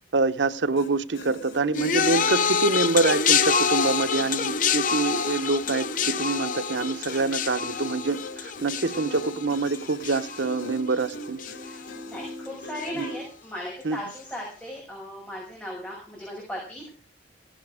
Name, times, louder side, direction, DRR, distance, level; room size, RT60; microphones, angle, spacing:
voice 1, 0.1-11.4 12.9-13.1 13.8-14.0, right 3 dB, 80° right, 0.9 m, -26 dB
sound 1, 0.7-13.2, left 1 dB, 85° left, 4.1 m, -41 dB
sound 2, 1.7-11.1 11.4-11.9 12.8-12.9, left 6 dB, 45° left, 0.8 m, -26 dB
voice 2, 11.6-16.9, equal, 10° left, 6.4 m, -37 dB
17.5 x 10.5 x 4.9 m
head